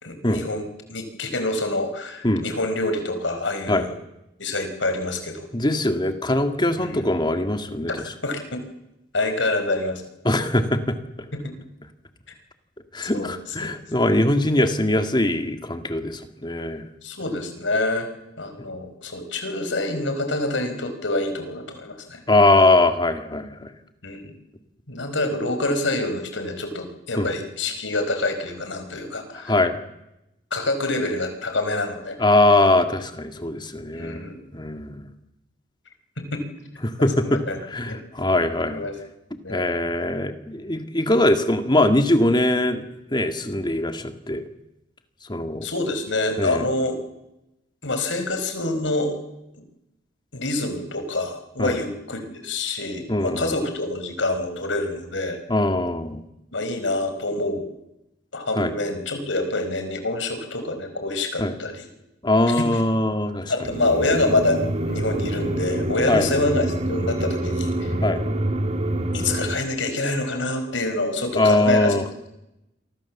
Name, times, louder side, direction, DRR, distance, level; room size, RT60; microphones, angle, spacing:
voice 1, 0.0-3.9 4.4-5.4 6.8-7.0 8.2-8.6 9.1-10.0 11.3-11.5 13.1-13.3 13.6-13.8 17.0-18.1 18.4-22.2 24.0-24.3 24.9-29.5 30.5-32.2 33.9-34.3 36.2-36.5 37.0-37.6 37.9-38.0 38.7-38.9 39.4-39.7 45.6-47.0 47.8-49.2 50.3-55.4 56.5-57.6 58.3-61.9 62.5-62.8 63.5-67.9 69.1-72.0, left 2 dB, 85° left, 7 dB, 4.7 m, -26 dB
voice 2, 5.5-7.9 10.2-11.0 12.9-16.8 18.6-18.7 22.3-23.7 27.2-27.3 29.5-29.8 32.2-34.2 34.5-35.0 36.8-37.4 37.7-38.8 39.5-42.8 43.1-44.4 45.3-45.7 46.4-46.7 51.6-51.8 53.1-53.5 55.5-56.2 58.6-58.7 61.4-61.5 62.2-63.5 66.1-66.3 68.0-68.2 71.3-72.0, left 1 dB, 25° left, 7 dB, 2.0 m, -21 dB
sound 1, 63.6-69.5, right 1 dB, 35° right, 2.2 m, -26 dB
28.5 x 24.0 x 7.3 m, 0.91 s
head